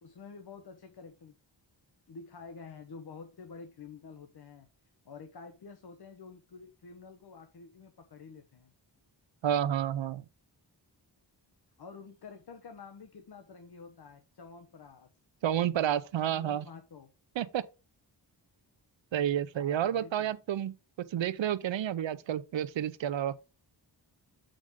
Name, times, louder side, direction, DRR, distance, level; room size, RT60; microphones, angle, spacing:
voice 1, 0.0-1.3 2.1-4.7 5.0-8.7 11.8-15.1 16.2-17.1 19.5-20.3, left 5 dB, 60° left, 1.0 m, -49 dB
voice 2, 9.4-10.2 15.4-16.6 17.4-17.6 19.1-23.3, right 10 dB, 85° right, 0.7 m, -30 dB
7.5 x 5.1 x 3.6 m
wide cardioid pair, 90°, 44 cm